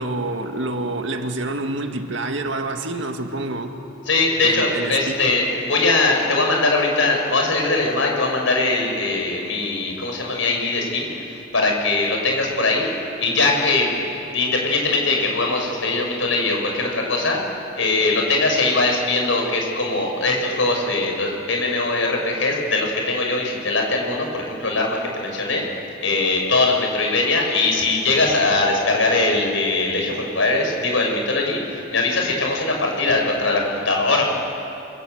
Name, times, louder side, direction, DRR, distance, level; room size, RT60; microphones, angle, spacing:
voice 1, 0.0-3.8 4.4-5.1 5.7-5.8, right 2 dB, 65° right, 5 dB, 2.0 m, -27 dB
voice 2, 4.1-12.9 13.2-13.9 14.3-25.6 26.0-34.2, left 3 dB, 70° left, 1 dB, 6.1 m, -21 dB
27.5 x 26.0 x 8.1 m, 2.9 s
head